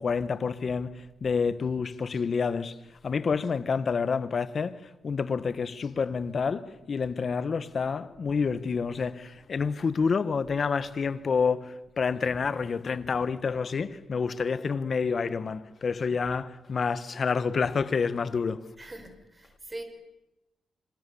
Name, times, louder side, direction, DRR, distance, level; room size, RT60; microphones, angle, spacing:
voice 1, 0.0-2.8 3.0-18.7, left 5 dB, 45° left, 1.5 m, -28 dB
voice 2, 18.8-19.8, right 2 dB, 20° right, 5.1 m, -42 dB
27.0 x 26.5 x 7.2 m
cardioid pair, 100°, 0 cm